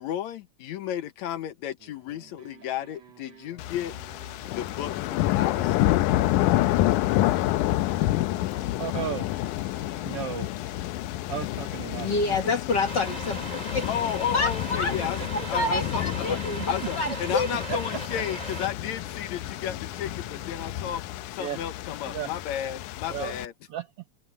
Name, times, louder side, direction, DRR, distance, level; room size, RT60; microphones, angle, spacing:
voice 1, 0.0-3.9 4.5-6.0 13.9-15.2 15.5-16.4 16.7-21.0 21.3-23.5, left 10 dB, 70° left, 2.2 m, -33 dB
sound 1, 1.8-21.0, right 6 dB, 55° right, 4.5 m, -52 dB
sound 2, 3.6-23.5, left 15 dB, 90° left, 2.2 m, -29 dB
voice 2, 8.8-9.3 10.0-10.5 11.3-12.1 15.2-15.3 17.7-18.0 21.4-21.6 22.1-22.3 23.1-23.3 23.7-23.9, right 10 dB, 75° right, 1.4 m, -33 dB
voice 3, 12.0-13.9 14.3-14.9 15.5-17.5, left 3 dB, 50° left, 1.4 m, -27 dB
Truck, 12.9-18.7, right 1 dB, 15° right, 2.1 m, -38 dB
omnidirectional pair, 3.5 m